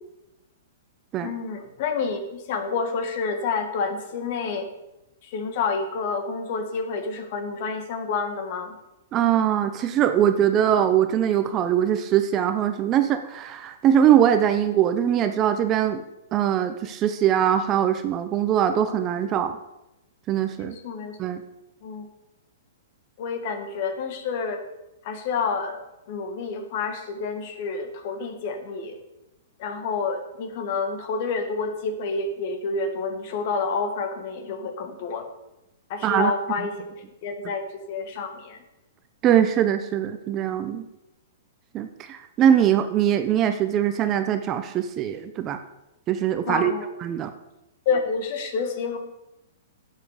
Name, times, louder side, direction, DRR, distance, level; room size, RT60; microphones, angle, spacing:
voice 1, 1.2-4.7 5.3-8.8 20.6-21.2 21.8-22.1 23.2-24.6 25.0-25.8 26.1-29.0 29.6-35.3 35.9-36.7 37.2-37.6 37.9-38.6 46.5-46.9 47.9-49.0, left 4 dB, 50° left, 7 dB, 2.0 m, -28 dB
voice 2, 9.1-16.0 16.3-19.6 20.3-20.8 21.2-21.4 36.0-36.3 39.2-40.8 41.7-45.6 46.1-46.7 47.0-47.3, right 10 dB, 25° right, 9 dB, 0.9 m, -22 dB
11.0 x 7.7 x 6.9 m, 0.93 s
hypercardioid pair, 145°, 0 cm